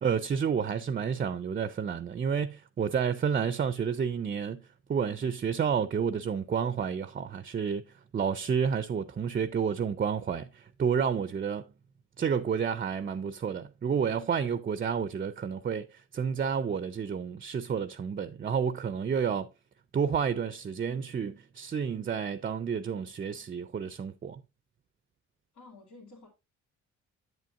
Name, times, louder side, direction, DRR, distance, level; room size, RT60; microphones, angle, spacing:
voice 1, 0.0-4.6 4.9-7.8 8.1-11.7 12.2-19.5 19.9-24.4, right 7 dB, 30° right, 0.5 m, -30 dB
voice 2, 25.5-26.3, left 3 dB, 85° left, 2.6 m, -51 dB
7.8 x 7.6 x 2.5 m
cardioid pair, 90°, 30 cm